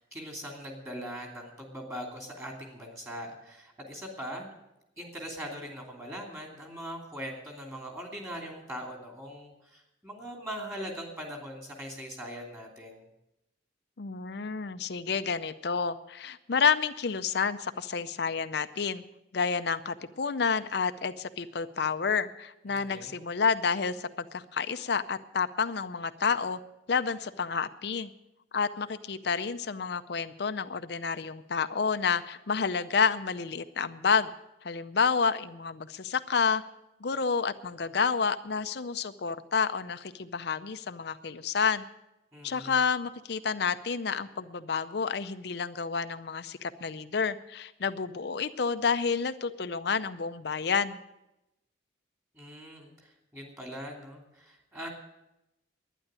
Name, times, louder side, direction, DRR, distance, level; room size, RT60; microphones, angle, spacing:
voice 1, 0.0-4.5 5.0-13.0 22.7-23.1 42.3-42.7 52.3-54.9, equal, 15° right, 1 dB, 2.7 m, -41 dB
voice 2, 14.0-19.0 19.3-26.6 26.9-28.1 28.5-34.3 34.6-36.6 37.0-41.8 42.4-51.0, left 5 dB, 60° left, 11 dB, 0.5 m, -29 dB
11.5 x 10.0 x 8.8 m, 0.90 s
head